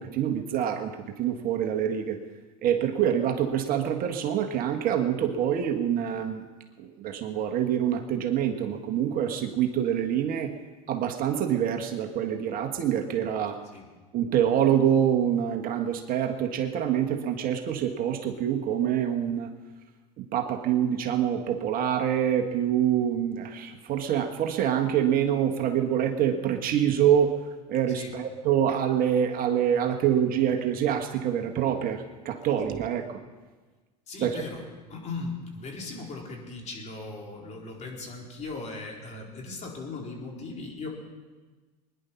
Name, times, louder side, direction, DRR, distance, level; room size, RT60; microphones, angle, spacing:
voice 1, 0.0-2.2 2.6-6.4 6.8-10.5 10.9-13.6 14.1-19.5 20.2-27.4 27.7-33.2 34.2-34.4, right 9 dB, 45° right, 4 dB, 1.6 m, -26 dB
voice 2, 27.9-28.2 34.1-40.9, left 3 dB, 35° left, -1 dB, 4.2 m, -38 dB
21.5 x 11.0 x 5.8 m, 1.3 s
hypercardioid pair, 95°, 20 cm